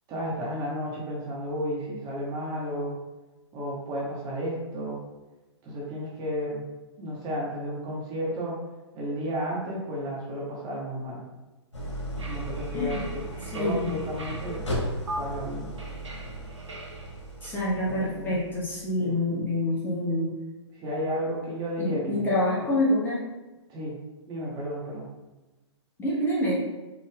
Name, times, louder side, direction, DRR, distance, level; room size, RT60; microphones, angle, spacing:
voice 1, 0.1-3.0 3.5-5.0 5.6-6.6 7.0-8.6 8.9-11.2 12.1-13.2 13.5-14.6 15.2-15.7 17.9-18.4 19.0-19.2 20.7-22.3 23.7-24.0 24.3-25.1, equal, 25° right, -4 dB, 1.1 m, -32 dB
Idling, 11.7-18.8, right 1 dB, 85° left, 1.2 m, -36 dB
sound 1, 12.2-14.6 15.1-15.2 15.8-17.5, right 1 dB, 80° right, 0.9 m, -41 dB
voice 2, 12.7-13.0 13.5-14.0 17.4-20.3 21.8-23.3 26.0-26.7, left 1 dB, 15° left, -7 dB, 1.1 m, -27 dB
4.6 x 2.5 x 3.7 m, 1.1 s
hypercardioid pair, 130°, 15 cm